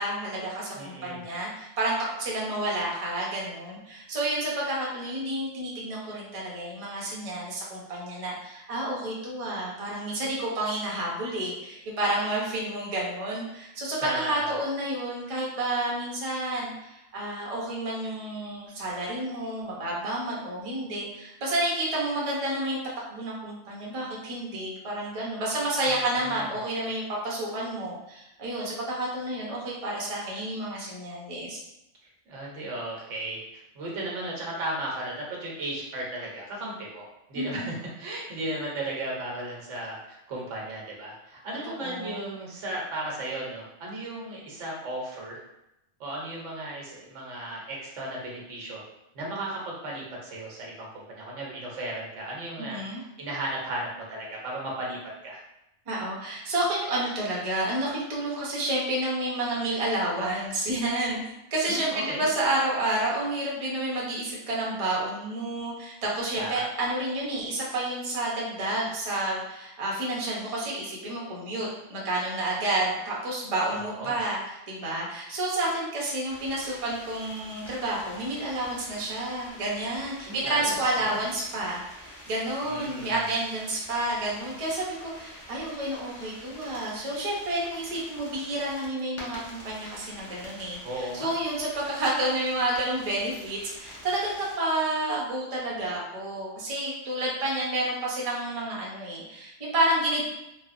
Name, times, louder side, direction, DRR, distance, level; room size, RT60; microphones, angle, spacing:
voice 1, 0.0-22.8 23.1-31.6 37.3-37.7 41.6-42.2 52.6-53.0 55.9-61.2 61.5-100.2, right 1 dB, 35° right, -4 dB, 0.6 m, -30 dB
voice 2, 0.7-1.2 14.0-14.5 25.9-26.5 32.3-33.4 33.7-45.4 46.0-48.8 49.1-52.8 53.2-55.0 55.2-55.4 61.7-62.3 66.4-66.6 73.7-74.2 80.3-81.2 82.6-83.3 90.8-91.3, right 1 dB, 80° right, -2 dB, 1.1 m, -35 dB
sound 1, 76.2-94.5, left 1 dB, 20° left, 0.4 m, -47 dB
3.2 x 2.0 x 2.4 m, 0.86 s
omnidirectional pair, 1.3 m